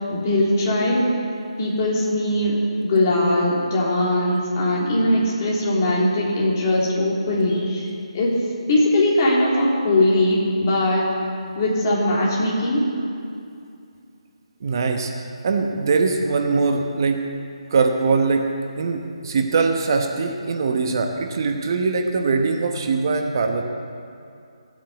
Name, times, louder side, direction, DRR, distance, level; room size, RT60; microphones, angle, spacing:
voice 1, 0.1-1.1 1.6-7.9 8.1-8.4 8.7-11.0 11.5-12.9, left 1 dB, 30° left, -4 dB, 3.4 m, -20 dB
voice 2, 14.6-17.3 17.7-23.6, right 4 dB, 40° right, 4 dB, 1.1 m, -22 dB
16.5 x 8.7 x 8.3 m, 2.4 s
figure-of-eight pair, 145°, 3 cm